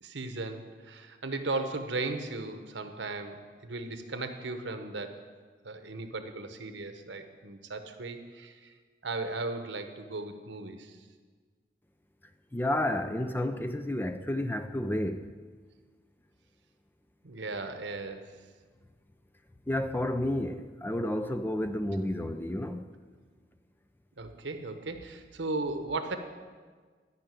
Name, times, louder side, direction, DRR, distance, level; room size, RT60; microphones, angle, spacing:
voice 1, 0.0-5.2 5.6-8.7 9.0-10.9 17.2-18.3 24.2-26.2, right 3 dB, 85° right, 1.1 m, -36 dB
voice 2, 12.5-15.3 19.7-22.9, left 1 dB, 10° left, 0.4 m, -31 dB
12.5 x 5.9 x 9.1 m
head